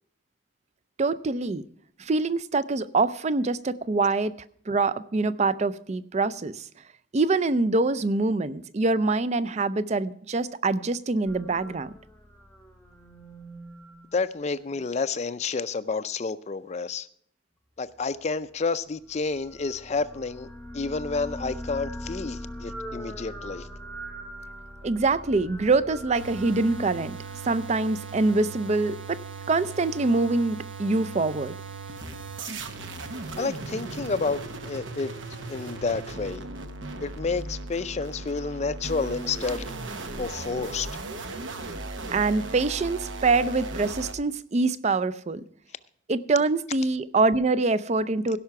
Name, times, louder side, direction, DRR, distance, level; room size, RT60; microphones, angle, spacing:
voice 1, 1.0-1.6 2.0-4.3 4.7-6.6 7.1-11.9 24.8-27.2 27.4-29.2 29.5-31.6 42.1-45.4 46.1-48.4, right 3 dB, 35° right, 0.4 m, -24 dB
sound 1, 11.3-14.9 19.1-28.3, equal, 10° left, 0.9 m, -41 dB
voice 2, 14.1-17.1 17.8-20.5 20.7-23.7 33.4-35.1 35.5-36.5 37.0-39.7 40.2-40.9, left 4 dB, 35° left, 0.4 m, -30 dB
sound 2, 26.1-44.1, right 3 dB, 75° right, 1.0 m, -37 dB
16.5 x 5.7 x 5.8 m
head